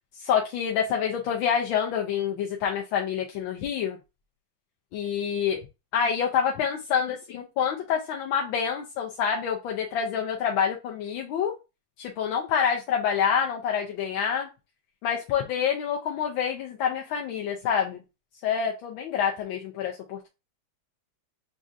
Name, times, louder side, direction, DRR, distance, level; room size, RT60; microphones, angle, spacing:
voice 1, 0.2-4.0 4.9-5.6 5.9-11.5 12.0-14.5 15.0-18.0 18.4-20.3, left 7 dB, 90° left, 1 dB, 1.4 m, -27 dB
7.2 x 2.6 x 2.4 m, 0.28 s
omnidirectional pair, 2.1 m